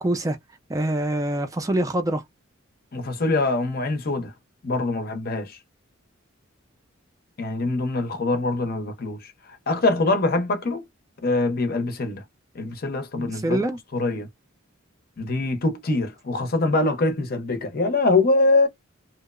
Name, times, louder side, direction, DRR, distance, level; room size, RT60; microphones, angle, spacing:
voice 1, 0.0-0.4 0.7-2.2 13.2-13.8, right 1 dB, 15° right, 0.4 m, -25 dB
voice 2, 2.9-4.3 4.6-5.6 7.4-9.3 9.7-10.8 11.2-12.2 12.5-13.6 13.9-14.3 15.2-18.7, left 2 dB, 45° left, 0.6 m, -23 dB
2.8 x 2.0 x 2.4 m
head